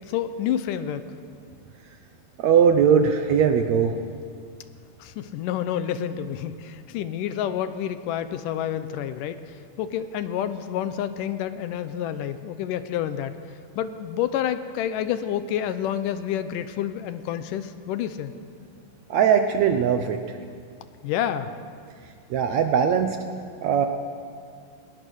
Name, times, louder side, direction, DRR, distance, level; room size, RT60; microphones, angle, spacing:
voice 1, 0.1-1.1 5.0-13.4 13.8-18.3 21.0-21.5, left 10 dB, 75° left, 11 dB, 2.2 m, -29 dB
voice 2, 2.4-3.9 19.1-20.4 22.3-23.2 23.6-23.9, right 7 dB, 70° right, 6 dB, 1.7 m, -20 dB
21.0 x 19.5 x 6.4 m, 2.2 s
omnidirectional pair, 4.0 m